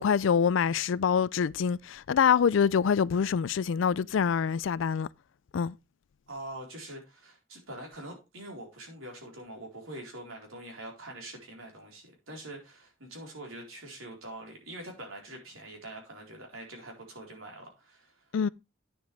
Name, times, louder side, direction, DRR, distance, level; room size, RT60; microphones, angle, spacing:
voice 1, 0.0-5.1 5.5-5.8 18.3-18.5, left 7 dB, 65° left, 0.4 m, -25 dB
voice 2, 6.3-18.3, right 1 dB, 85° right, 4.2 m, -44 dB
9.6 x 7.4 x 3.4 m
head